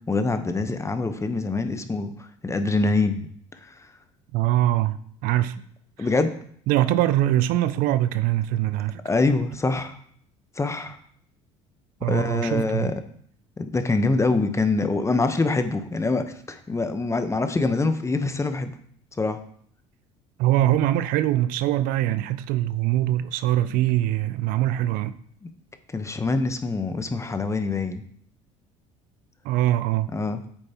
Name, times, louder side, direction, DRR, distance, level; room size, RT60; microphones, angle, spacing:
voice 1, 0.1-3.3 3.6-3.8 6.0-6.3 9.0-10.0 10.6-11.0 12.1-12.9 13.6-18.7 19.2-19.4 25.9-28.0 30.1-30.4, left 3 dB, 20° left, 1.0 m, -24 dB
voice 2, 4.3-5.6 6.0-6.1 6.7-9.0 12.0-12.9 20.4-25.2 29.4-30.1, right 14 dB, 65° right, 0.4 m, -23 dB
8.3 x 6.4 x 2.9 m
hypercardioid pair, 70°, 16 cm